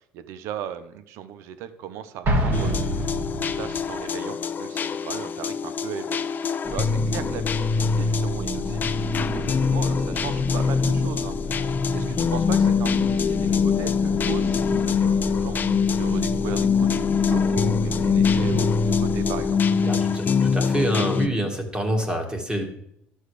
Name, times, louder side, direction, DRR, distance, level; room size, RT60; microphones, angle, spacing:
voice 1, 0.0-2.9 3.5-15.6 15.9-20.2, right 9 dB, 70° right, 12 dB, 0.7 m, -37 dB
Explosion, 2.2-3.9, right 1 dB, 50° right, 1.8 m, -25 dB
sound 1, 2.5-21.3, left 6 dB, 40° left, 0.5 m, -24 dB
sound 2, 6.6-19.5, left 1 dB, 15° left, 1.4 m, -32 dB
voice 2, 19.8-22.7, right 1 dB, 15° right, 3 dB, 1.8 m, -26 dB
11.5 x 6.4 x 3.2 m, 0.74 s
hypercardioid pair, 70°, 5 cm